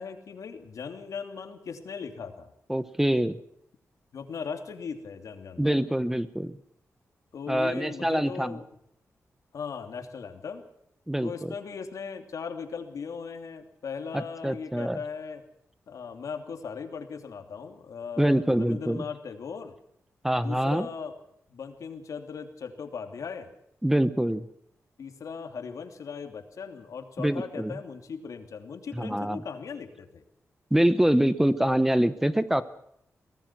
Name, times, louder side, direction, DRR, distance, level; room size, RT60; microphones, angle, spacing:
voice 1, 0.0-2.5 4.1-5.8 7.3-8.6 9.5-10.6 11.2-15.4 15.9-19.7 20.4-21.1 21.5-23.5 25.0-30.2, left 6 dB, 80° left, 6 dB, 2.9 m, -38 dB
voice 2, 2.7-3.4 5.6-6.6 7.5-8.6 11.1-11.5 14.1-15.0 18.2-19.0 20.2-20.9 23.8-24.5 27.2-27.8 28.9-29.4 30.7-32.6, right 1 dB, 5° right, 13 dB, 0.9 m, -25 dB
24.0 x 18.5 x 6.1 m, 0.73 s
wide cardioid pair, 145°, 6 cm